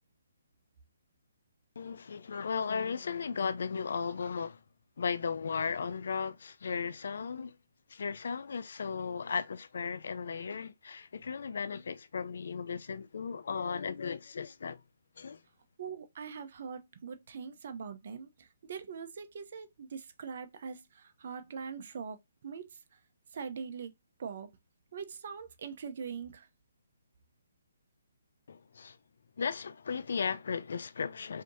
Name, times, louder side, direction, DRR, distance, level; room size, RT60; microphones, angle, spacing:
voice 1, 1.8-4.6 5.0-7.6 7.9-14.8 15.2-15.4 28.5-29.0 29.4-31.4, left 6 dB, 65° left, 0.6 m, -36 dB
voice 2, 15.8-23.0 23.3-23.9 24.2-24.5 24.9-26.5, right 6 dB, 50° right, 0.9 m, -42 dB
4.9 x 2.9 x 2.7 m
hypercardioid pair, 160°, 0 cm